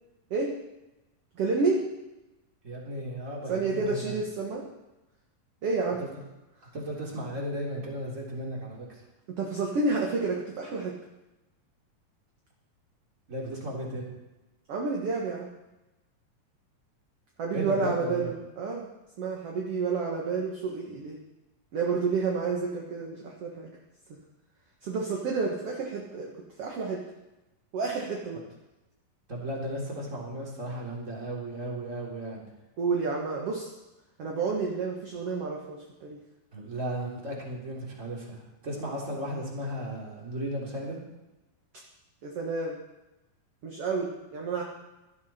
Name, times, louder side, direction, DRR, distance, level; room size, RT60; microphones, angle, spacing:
voice 1, 1.4-1.8 3.5-4.6 5.6-6.0 9.3-10.9 14.7-15.5 17.4-18.9 19.2-21.2 21.7-23.7 24.8-26.3 26.6-27.0 27.7-28.4 32.8-33.7 34.2-36.2 42.2-42.8 43.6-44.6, right 4 dB, 50° right, -1 dB, 2.1 m, -30 dB
voice 2, 2.6-4.2 6.0-6.1 6.7-9.0 13.3-14.0 17.5-18.3 29.3-32.5 36.5-41.0, right 1 dB, 20° right, -3 dB, 3.4 m, -35 dB
17.0 x 12.5 x 4.4 m, 1.0 s
omnidirectional pair, 4.1 m